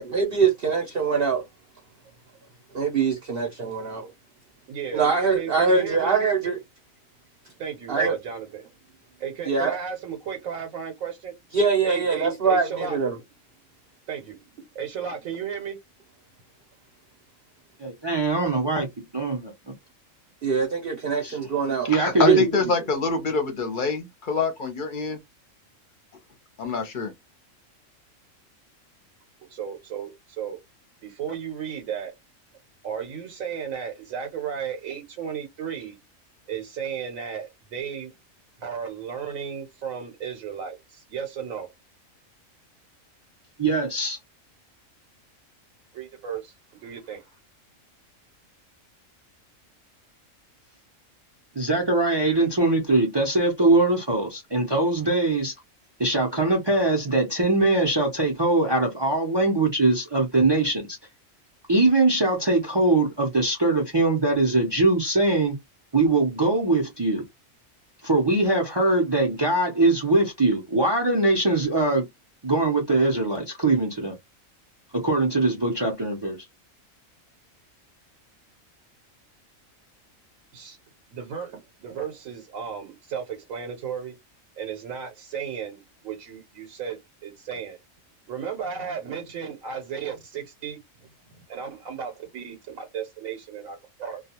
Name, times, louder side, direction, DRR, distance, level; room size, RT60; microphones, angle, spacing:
voice 1, 0.0-1.4 2.7-4.1 4.9-6.6 7.9-8.1 9.5-9.8 11.5-13.2 20.4-21.9 22.3-22.5, right 5 dB, 55° right, 0.8 m, -23 dB
voice 2, 4.7-6.1 7.6-8.7 9.2-11.3 11.8-13.0 14.1-14.4 14.7-15.8 29.5-30.6 31.0-32.1 32.8-36.0 36.5-38.1 38.6-41.7 45.9-47.3 80.5-80.8 81.1-84.1 84.6-87.8 88.3-90.8 91.5-94.2, right 7 dB, 80° right, 1.1 m, -34 dB
voice 3, 17.8-18.9 19.1-19.7 21.2-21.4 21.9-22.4 43.6-44.2 51.5-55.5 56.0-61.0 61.7-65.6 65.9-67.2 68.0-72.1 72.4-74.2 74.9-76.4, right 2 dB, 30° right, 0.4 m, -22 dB
voice 4, 21.8-25.2 26.6-27.1, left 4 dB, 45° left, 0.7 m, -26 dB
2.3 x 2.3 x 2.8 m
omnidirectional pair, 1.4 m